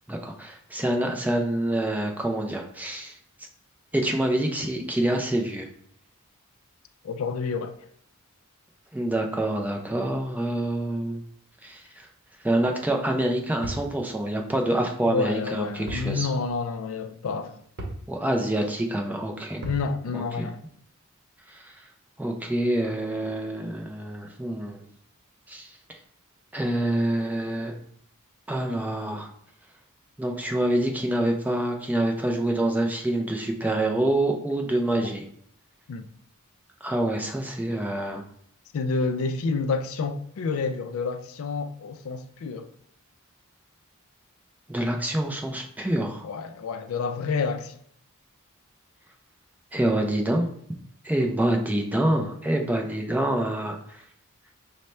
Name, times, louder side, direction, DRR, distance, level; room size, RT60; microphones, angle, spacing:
voice 1, 0.1-3.1 3.9-5.7 8.9-11.2 11.6-12.1 12.4-16.3 18.1-19.7 20.1-20.5 21.5-21.7 22.2-24.8 25.5-25.7 26.5-27.7 28.5-29.3 30.2-35.2 36.8-38.2 44.7-46.3 49.7-50.5 51.0-54.0, right 1 dB, 5° right, 0.4 m, -26 dB
voice 2, 7.0-7.7 15.1-17.6 19.6-20.6 35.0-35.1 35.9-36.1 38.7-42.7 46.2-47.8, left 4 dB, 65° left, 0.4 m, -29 dB
sound 1, 13.6-13.9 15.9-16.1 16.5-16.6 17.8-18.1 19.6-19.9, right 1 dB, 55° right, 0.8 m, -35 dB
5.5 x 2.1 x 3.1 m
head